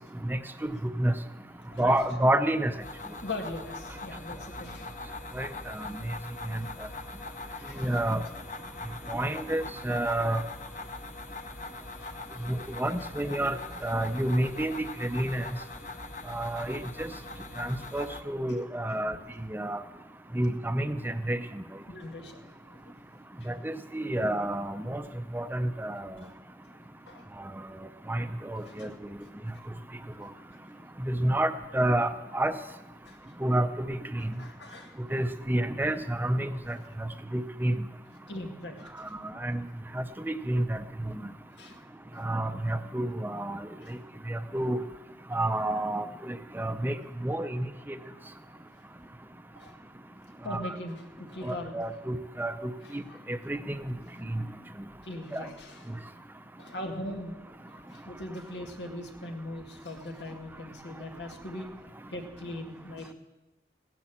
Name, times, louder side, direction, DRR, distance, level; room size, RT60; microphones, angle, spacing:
voice 1, 0.3-0.7 1.0-1.1 1.8-2.7 5.3-5.5 5.7-5.9 6.5-6.6 7.8-8.2 9.1-10.4 12.5-15.5 16.3-17.1 17.6-19.2 19.5-19.8 20.3-21.6 23.5-25.0 25.3-26.2 28.1-28.9 31.1-32.5 33.4-34.0 34.2-34.3 35.1-37.8 39.4-39.6 39.9-40.8 42.2-43.6 44.3-44.8 45.3-47.0 47.2-48.0 50.5-50.7 51.4-53.0 53.3-53.9 54.3-54.4 55.3-55.4, right 1 dB, 10° right, 10 dB, 0.6 m, -29 dB
voice 2, 1.6-2.0 3.1-5.0 7.6-8.0 11.9-12.8 17.7-17.9 21.9-22.4 22.7-22.9 23.4-23.5 26.2-26.3 27.1-27.3 28.6-28.9 29.5-29.7 30.1-30.3 30.7-30.8 33.1-33.2 34.2-35.0 38.3-39.2 41.6-41.8 42.1-42.3 43.8-43.9 48.1-48.2 48.5-48.6 49.6-49.7 50.4-51.9 52.8-53.2 54.3-54.4 55.0-56.0 56.6-61.7 62.1-63.1, left 1 dB, 90° left, 3 dB, 2.0 m, -41 dB
sound 1, 2.8-18.2, left 2 dB, 45° left, 1.0 m, -42 dB
16.0 x 10.5 x 7.3 m, 1.1 s
head